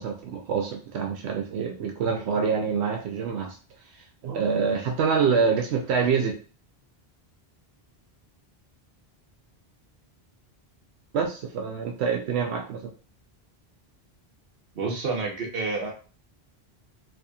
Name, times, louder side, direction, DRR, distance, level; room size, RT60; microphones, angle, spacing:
voice 1, 0.0-3.6 3.9-6.4 11.1-12.9, right 6 dB, 90° right, 2 dB, 0.8 m, -26 dB
voice 2, 14.7-15.9, right 3 dB, 65° right, 1 dB, 1.1 m, -29 dB
4.6 x 2.8 x 2.4 m, 0.37 s
omnidirectional pair, 1.1 m